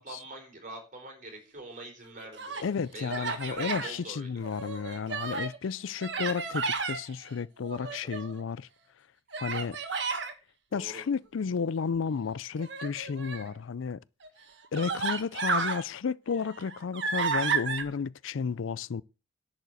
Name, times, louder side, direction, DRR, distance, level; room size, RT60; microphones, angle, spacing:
voice 1, 0.0-2.6 2.9-4.3 7.8-8.1 9.3-9.5 10.7-11.0, right 2 dB, 40° right, 4.0 m, -44 dB
Human voice, 2.1-2.7 3.1-3.9 4.4-5.6 6.0-7.0 7.6-8.4 9.3-10.3 12.6-13.5 14.2-14.3 14.7-15.8 16.3-17.8, right 5 dB, 65° right, 1.6 m, -32 dB
voice 2, 2.6-8.7 9.4-9.8 10.7-14.0 14.7-19.0, left 5 dB, 80° left, 0.4 m, -32 dB
11.0 x 5.0 x 8.0 m
head